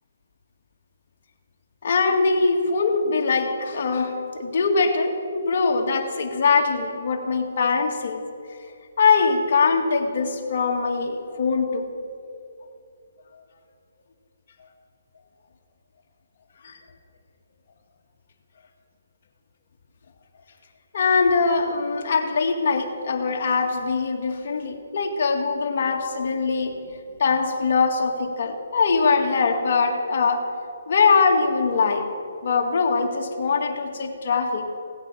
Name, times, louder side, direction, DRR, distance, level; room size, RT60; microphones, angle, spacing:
voice 1, 1.8-8.2 9.0-11.9 16.6-16.8 20.9-26.7 27.2-30.4 30.9-32.0 32.4-34.7, left 4 dB, 55° left, 3 dB, 2.1 m, -22 dB
17.5 x 8.8 x 7.4 m, 2.6 s
hypercardioid pair, 155°, 0 cm